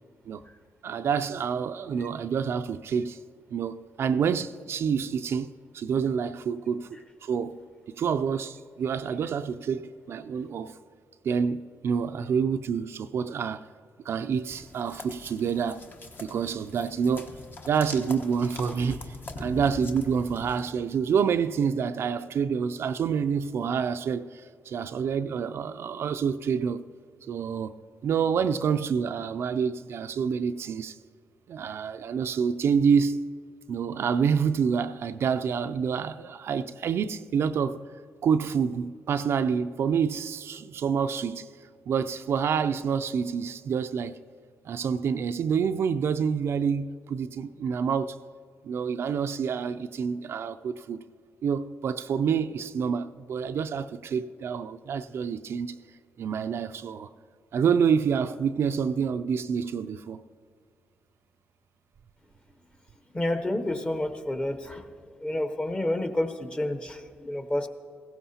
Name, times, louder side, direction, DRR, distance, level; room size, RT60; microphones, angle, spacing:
voice 1, 0.8-3.2 3.5-5.5 5.7-6.9 7.2-7.6 7.9-10.8 11.2-13.7 14.1-15.8 16.2-17.3 17.7-26.8 27.3-27.8 28.0-31.0 31.5-33.2 33.7-37.8 38.2-41.5 41.9-44.2 44.7-48.2 48.6-51.0 51.4-55.8 56.2-57.1 57.5-60.2, right 6 dB, 60° right, 0.4 m, -27 dB
sound 1, 14.5-20.7, left 2 dB, 45° left, 1.2 m, -42 dB
voice 2, 63.1-64.9 65.2-67.7, left 1 dB, 20° left, 1.0 m, -29 dB
16.0 x 15.5 x 2.8 m
cardioid pair, 75°, 5 cm